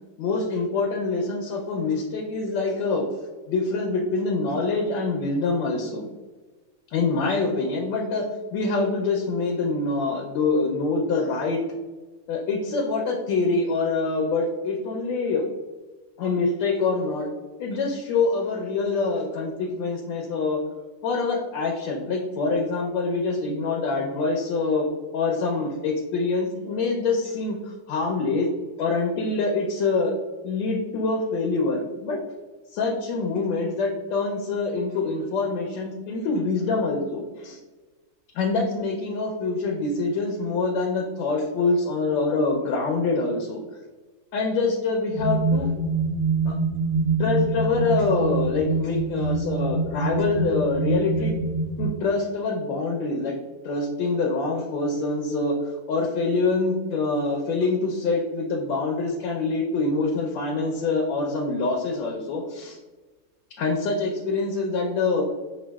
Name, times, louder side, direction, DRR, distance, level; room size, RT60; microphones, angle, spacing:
voice 1, 0.2-3.0 3.5-6.1 6.9-8.2 8.5-11.6 12.3-15.4 16.2-17.3 17.6-20.6 21.0-24.9 25.1-28.5 28.8-30.1 30.4-32.2 32.7-37.6 38.3-43.6 44.3-45.7 46.4-46.6 47.2-51.4 51.8-53.4 53.6-62.8 63.6-65.2, left 3 dB, 80° left, 0 dB, 1.3 m, -25 dB
sound 1, 45.2-51.9, right 3 dB, 75° right, 0.6 m, -25 dB
6.2 x 2.2 x 2.2 m, 1.3 s
omnidirectional pair, 2.0 m